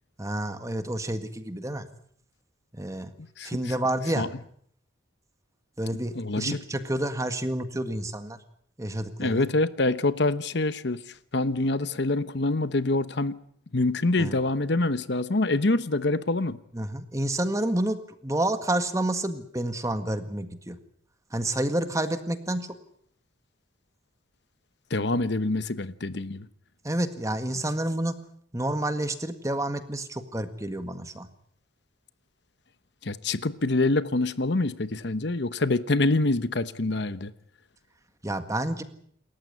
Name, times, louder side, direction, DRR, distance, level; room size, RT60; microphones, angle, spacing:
voice 1, 0.2-1.9 2.7-3.1 3.4-4.3 5.8-8.4 8.8-9.5 14.2-14.4 16.7-20.8 21.3-22.7 26.8-28.2 28.5-31.3 38.2-38.8, right 1 dB, 15° right, 1.8 m, -29 dB
voice 2, 5.9-6.6 9.2-11.0 11.3-13.4 13.7-16.6 24.9-26.5 33.0-37.3, left 2 dB, 60° left, 1.0 m, -26 dB
28.0 x 14.0 x 9.6 m
head